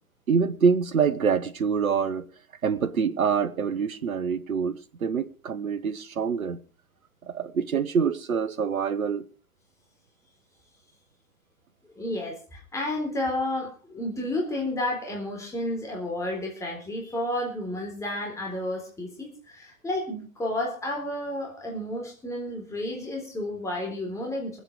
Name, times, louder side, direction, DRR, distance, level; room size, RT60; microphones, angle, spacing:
voice 1, 0.3-2.3 2.6-6.6 7.3-9.2, right 6 dB, 80° right, 1.1 m, -25 dB
voice 2, 12.0-24.6, left 1 dB, 5° left, 3.9 m, -31 dB
24.0 x 8.9 x 4.9 m
hypercardioid pair, 120°, 41 cm